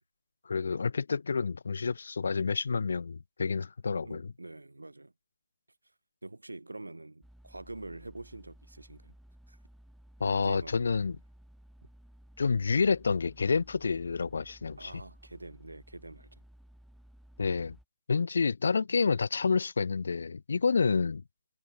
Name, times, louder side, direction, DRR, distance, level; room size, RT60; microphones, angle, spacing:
voice 1, 0.5-4.3 10.2-11.2 12.4-14.9 17.4-17.8 18.1-21.2, left 5 dB, 60° left, 0.5 m, -29 dB
voice 2, 4.0-5.1 6.2-9.1 9.5-9.6 10.4-10.8 14.8-16.4, right 2 dB, 80° right, 5.6 m, -45 dB
sound 1, 7.2-17.9, equal, ahead, 7.4 m, -56 dB
figure-of-eight pair, 145°, 0 cm